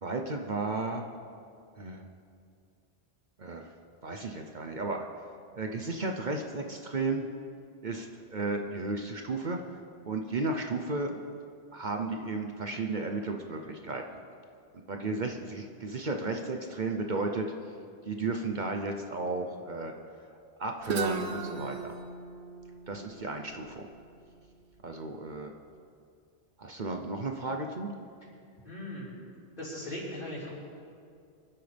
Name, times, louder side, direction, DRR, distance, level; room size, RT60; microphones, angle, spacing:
voice 1, 0.0-1.1 1.8-2.0 3.4-3.7 4.0-5.2 5.5-7.3 7.8-9.6 10.1-11.1 11.7-14.0 14.9-17.5 18.1-19.9 20.6-21.9 22.9-23.9 24.8-25.5 26.6-27.9, right 3 dB, 50° right, 3 dB, 0.9 m, -34 dB
Guitar, 20.8-24.6, right 4 dB, 80° right, 1.2 m, -37 dB
voice 2, 28.6-29.2 29.6-30.5, left 1 dB, 55° left, -7 dB, 4.9 m, -38 dB
24.5 x 12.0 x 3.4 m, 2.4 s
omnidirectional pair, 1.1 m